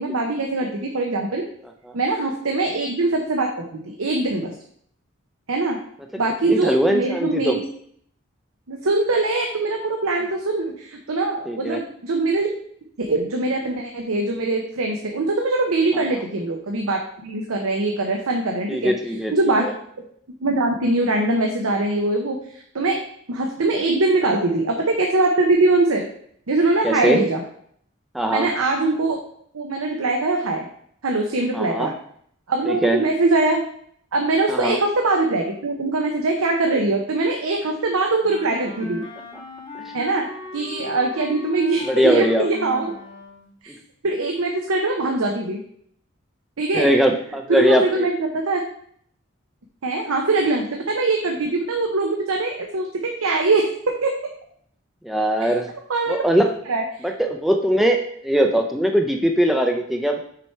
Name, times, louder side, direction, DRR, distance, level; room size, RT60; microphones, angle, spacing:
voice 1, 0.0-1.4 1.9-4.5 5.5-5.8 6.2-7.6 8.7-12.5 13.0-18.9 19.3-19.7 20.4-23.0 23.3-26.1 26.5-27.4 28.3-29.2 29.5-30.7 31.0-31.9 32.5-33.6 34.1-39.0 39.9-42.9 44.0-45.6 46.6-46.9 47.5-48.6 49.8-53.7 54.0-54.1 55.9-56.2 56.7-56.8, right 2 dB, 85° right, 2 dB, 0.8 m, -22 dB
voice 2, 6.5-7.6 11.5-11.8 15.9-16.2 18.7-19.3 19.6-19.7 26.8-27.2 28.1-28.5 31.5-31.9 32.7-33.1 34.5-34.8 39.8-39.9 40.8-40.9 41.8-42.5 46.7-48.1 55.0-55.7 56.1-56.5 57.0-60.2, equal, ahead, 3 dB, 0.4 m, -21 dB
Wind instrument woodwind instrument, 38.2-43.5, left 1 dB, 25° left, 0.9 m, -38 dB
6.0 x 4.6 x 4.4 m, 0.65 s
head